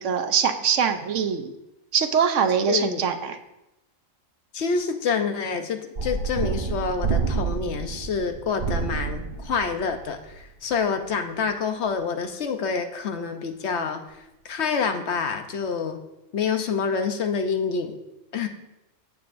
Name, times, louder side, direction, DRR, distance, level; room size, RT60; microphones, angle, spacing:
voice 1, 0.0-1.5 1.9-3.4, right 7 dB, 75° right, 8 dB, 1.1 m, -23 dB
voice 2, 2.7-3.0 4.5-16.0 16.3-18.0 18.3-18.5, left 5 dB, 65° left, 6 dB, 1.0 m, -27 dB
sound 1, 6.0-10.8, right 5 dB, 50° right, 0.8 m, -29 dB
15.0 x 7.2 x 2.6 m, 0.93 s
omnidirectional pair, 1.3 m